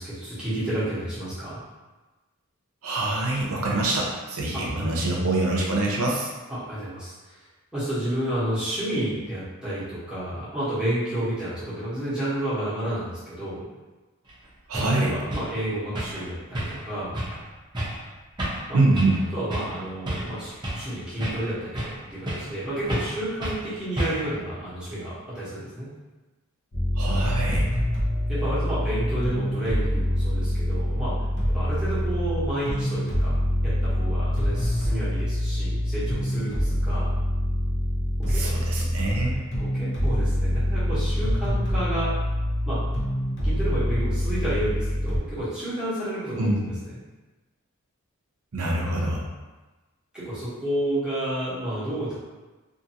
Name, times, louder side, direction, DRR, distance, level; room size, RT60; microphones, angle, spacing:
voice 1, 0.0-1.6 4.5-4.6 6.5-7.4 7.7-13.6 14.8-17.1 18.7-18.8 19.3-25.9 28.3-31.2 31.5-33.3 33.6-37.1 38.2-38.4 39.0-42.1 42.6-42.8 43.4-46.5 46.8-46.9 50.1-52.2, right 1 dB, 5° right, -12 dB, 1.0 m, -31 dB
voice 2, 2.8-6.3 14.7-15.1 18.7-19.2 27.0-27.7 38.3-39.4 46.4-46.5 48.5-49.2, right 2 dB, 75° right, -2 dB, 0.6 m, -25 dB
sound 1, 14.3-14.4 14.7-14.9 15.3-15.5 15.9-16.2 16.5-16.9 17.1-17.4 17.7-18.0 18.4-18.7 18.9-19.2 19.5-19.7 20.1-20.9 21.2-22.0 22.3-22.6 22.9-23.1 23.4-23.6 24.0-24.3, right 1 dB, 20° right, 0.6 m, -30 dB
sound 2, 26.7-45.2, equal, 55° left, 0.7 m, -25 dB
2.6 x 2.6 x 2.8 m, 1.2 s
head